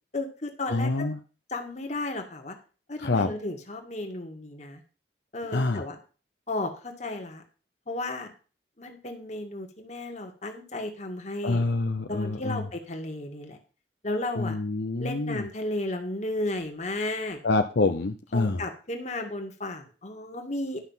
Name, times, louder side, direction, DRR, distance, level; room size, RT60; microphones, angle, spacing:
voice 1, 0.1-0.9 1.5-2.6 2.9-4.8 5.3-6.0 6.5-7.4 7.9-8.3 8.8-11.6 12.1-13.6 14.0-14.6 15.0-17.4 18.3-20.9, left 2 dB, 40° left, 4 dB, 2.0 m, -34 dB
voice 2, 0.7-1.2 3.0-3.3 5.5-5.8 11.4-12.7 14.3-15.5 17.4-18.7, left 3 dB, 70° left, 7 dB, 0.7 m, -26 dB
11.5 x 6.0 x 5.7 m, 0.36 s
head